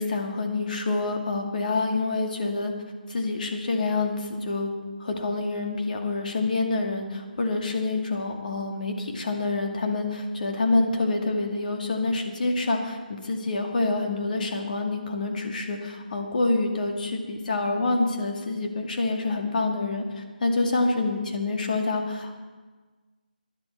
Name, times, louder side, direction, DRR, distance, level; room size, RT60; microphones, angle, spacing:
voice 1, 0.0-2.7 3.1-4.7 5.0-20.0 20.4-22.3, left 3 dB, 60° left, 2 dB, 2.2 m, -27 dB
17.5 x 10.5 x 4.6 m, 1.4 s
figure-of-eight pair, 155°, 5 cm